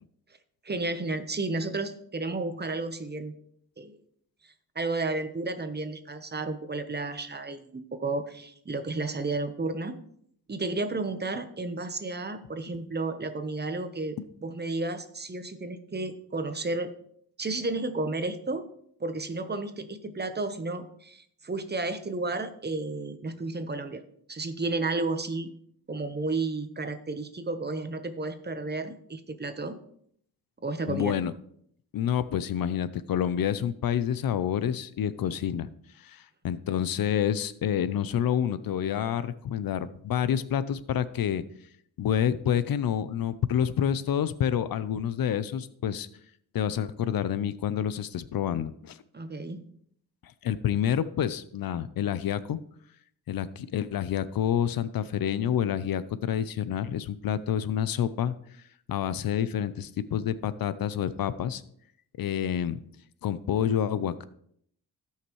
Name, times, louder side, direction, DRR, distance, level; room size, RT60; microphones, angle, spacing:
voice 1, 0.6-3.3 3.8-4.0 4.7-10.0 10.5-16.9 17.4-18.7 19.0-24.0 24.3-25.5 25.9-29.8 30.6-31.2 49.1-49.6, right 3 dB, 25° right, 9 dB, 1.0 m, -32 dB
voice 2, 30.9-31.3 31.9-35.7 36.0-41.4 42.0-46.1 46.5-49.0 50.2-52.6 53.3-58.3 58.9-61.6 62.2-62.8 63.2-64.2, left 9 dB, 65° left, 15 dB, 0.6 m, -28 dB
16.5 x 5.7 x 3.1 m, 0.67 s
cardioid pair, 85°, 37 cm